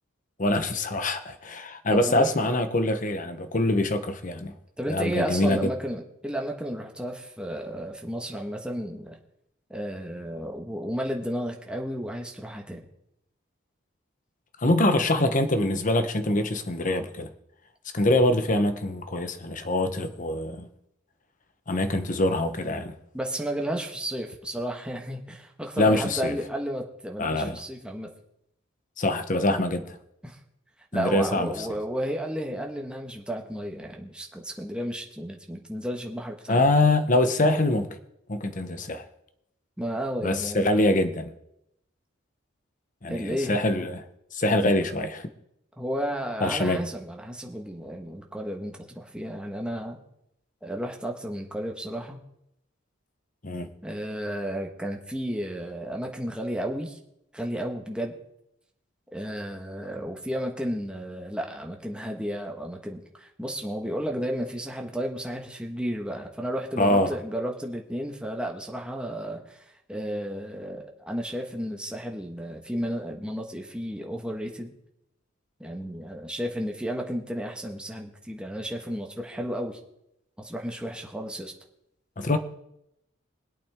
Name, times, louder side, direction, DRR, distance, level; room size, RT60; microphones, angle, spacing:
voice 1, 0.4-4.5 4.9-5.7 14.6-17.3 17.9-20.7 21.7-22.9 25.8-26.4 27.2-27.6 29.0-30.0 30.9-31.7 36.5-37.9 38.3-39.0 40.2-41.3 43.0-44.0 44.3-45.3 46.4-46.8 53.4-53.7 66.8-67.1 82.2-82.4, left 1 dB, 40° left, 1.0 m, -24 dB
voice 2, 1.9-2.3 4.8-9.2 9.7-12.9 23.1-28.1 30.2-30.4 30.9-36.6 39.8-41.0 43.1-43.5 45.8-50.0 50.6-52.2 53.8-57.0 57.3-58.1 59.1-69.6 69.9-74.7 75.6-79.8 80.4-81.5, equal, 5° right, 1.4 m, -33 dB
23.0 x 8.5 x 3.6 m
head